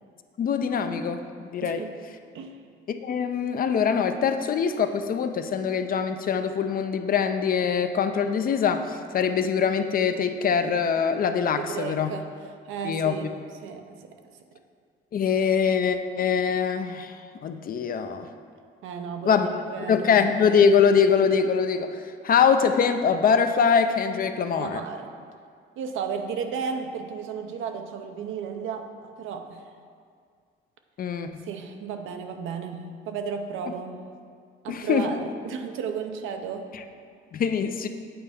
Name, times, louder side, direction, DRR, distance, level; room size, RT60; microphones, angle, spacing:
voice 1, 0.4-1.8 2.9-12.1 12.8-13.3 15.1-17.2 17.4-18.3 19.2-19.5 19.9-24.8 31.0-31.3 34.7-35.1 36.7-36.8 37.3-37.9, left 6 dB, 45° left, 8 dB, 0.4 m, -23 dB
voice 2, 1.6-1.9 2.3-2.6 11.5-12.3 12.6-13.3 13.6-14.1 18.8-20.3 24.4-25.1 25.8-29.6 31.4-34.1 34.6-36.7, right 6 dB, 85° right, 5 dB, 0.6 m, -34 dB
8.6 x 4.3 x 3.5 m, 2.1 s
cardioid pair, 90°, 20 cm